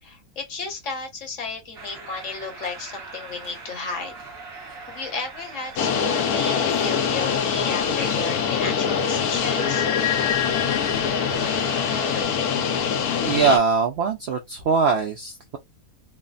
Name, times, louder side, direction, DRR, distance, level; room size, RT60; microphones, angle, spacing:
voice 1, 0.0-4.1 4.9-9.9, left 4 dB, 55° left, 1.2 m, -33 dB
sound 1, 1.7-12.2, right 3 dB, 45° right, 1.1 m, -40 dB
sound 2, 5.8-13.6, left 7 dB, 75° left, 1.1 m, -23 dB
voice 2, 13.2-15.6, right 5 dB, 70° right, 0.6 m, -22 dB
3.2 x 2.0 x 2.3 m
omnidirectional pair, 1.6 m